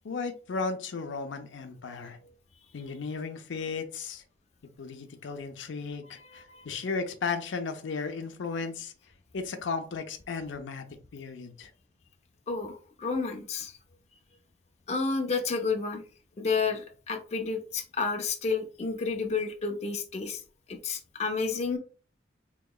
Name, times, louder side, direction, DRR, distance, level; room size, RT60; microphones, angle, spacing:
voice 1, 0.0-2.2 2.7-4.2 4.8-8.9 9.3-10.9 11.1-11.7, left 4 dB, 85° left, 0.5 m, -35 dB
voice 2, 6.0-6.7 12.5-13.8 14.9-16.0 16.4-20.4 20.7-21.8, left 4 dB, 35° left, 0.4 m, -31 dB
3.8 x 2.9 x 2.2 m
head